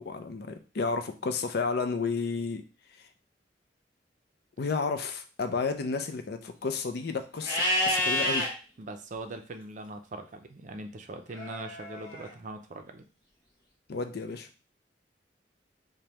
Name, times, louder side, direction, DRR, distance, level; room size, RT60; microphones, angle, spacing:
voice 1, 0.0-2.6 4.6-8.5 13.9-14.5, left 4 dB, 60° left, 7 dB, 0.5 m, -32 dB
Livestock farm animals working animals, 7.4-8.5 11.3-12.3, left 1 dB, 25° left, 1.6 m, -28 dB
voice 2, 8.8-13.1, right 2 dB, 45° right, 6 dB, 0.5 m, -41 dB
5.1 x 2.2 x 2.9 m, 0.34 s
head